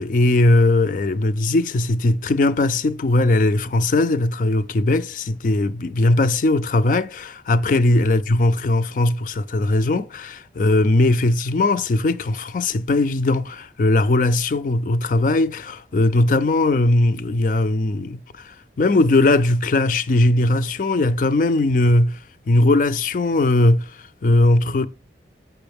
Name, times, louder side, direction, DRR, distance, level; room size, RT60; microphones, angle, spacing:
voice 1, 0.0-18.2 18.4-22.2 22.5-23.9 24.2-24.9, left 2 dB, 45° left, 0.4 m, -19 dB
6.9 x 6.2 x 3.4 m
head